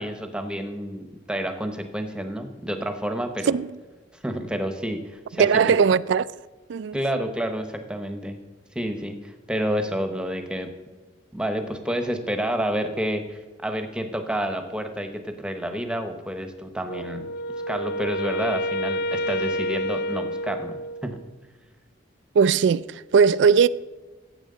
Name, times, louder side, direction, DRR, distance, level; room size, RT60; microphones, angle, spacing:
voice 1, 0.0-3.5 4.2-5.6 6.9-8.4 8.7-10.7 11.3-17.3 17.7-20.8 21.0-21.2, equal, 5° right, 0.9 m, -29 dB
voice 2, 5.4-6.3 6.7-7.0 22.3-23.7, right 6 dB, 70° right, 0.3 m, -19 dB
Wind instrument woodwind instrument, 16.9-21.2, equal, 55° left, 0.4 m, -29 dB
14.5 x 8.2 x 3.9 m
head